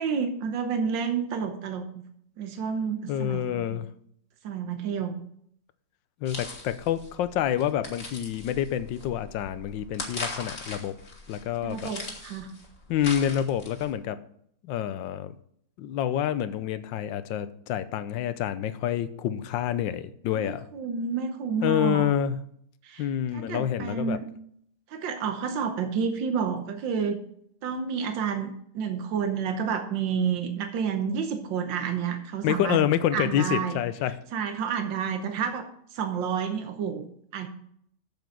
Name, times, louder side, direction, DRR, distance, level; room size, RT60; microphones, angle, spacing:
voice 1, 0.0-2.0 2.4-3.8 4.4-5.2 11.6-12.5 20.4-22.1 22.8-23.1 23.3-24.3 24.9-27.2 27.6-32.8 33.1-33.8 34.3-35.7 35.9-37.1 37.3-37.5, right 6 dB, 85° right, 6 dB, 1.7 m, -30 dB
voice 2, 3.1-3.9 6.2-11.0 11.3-11.9 12.9-14.2 14.6-15.3 15.8-20.7 21.6-22.4 23.0-24.2 32.4-34.2, left 10 dB, 80° left, 13 dB, 1.4 m, -27 dB
sound 1, 6.3-13.9, left 2 dB, 35° left, 1.9 m, -40 dB
7.9 x 7.1 x 6.1 m, 0.68 s
omnidirectional pair, 2.0 m